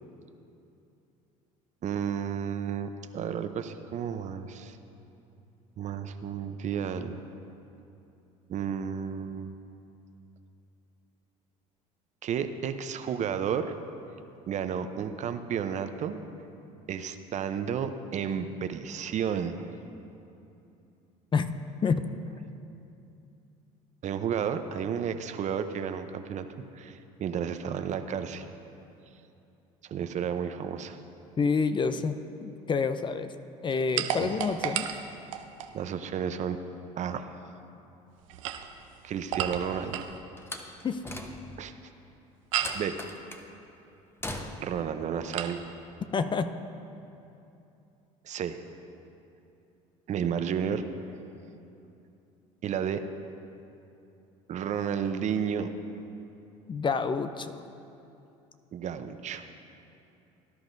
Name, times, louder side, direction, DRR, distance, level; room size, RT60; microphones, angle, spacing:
voice 1, 1.8-4.8 5.8-7.2 8.5-9.5 12.2-13.7 14.5-16.2 16.9-19.7 24.0-26.5 26.8-28.5 29.8-31.0 34.2-34.3 35.7-36.6 37.0-37.3 39.0-40.0 41.6-41.7 42.7-43.0 44.6-45.6 48.2-48.6 50.1-50.8 52.6-53.0 54.5-55.7 58.7-59.5, right 8 dB, 45° right, 9 dB, 0.7 m, -32 dB
voice 2, 31.4-33.4 33.6-34.9 40.8-41.0 46.1-46.5 56.7-57.6, left 5 dB, 30° left, 10 dB, 0.5 m, -28 dB
sound 1, 34.0-35.8 38.2-40.2 42.5-42.9 45.3-45.6, right 9 dB, 85° right, 0.7 m, -33 dB
Slam, 40.4-41.7 42.6-43.5 44.2-44.8, left 1 dB, 15° left, 1.1 m, -40 dB
18.5 x 11.0 x 2.7 m, 2.8 s
supercardioid pair, 80°, 16 cm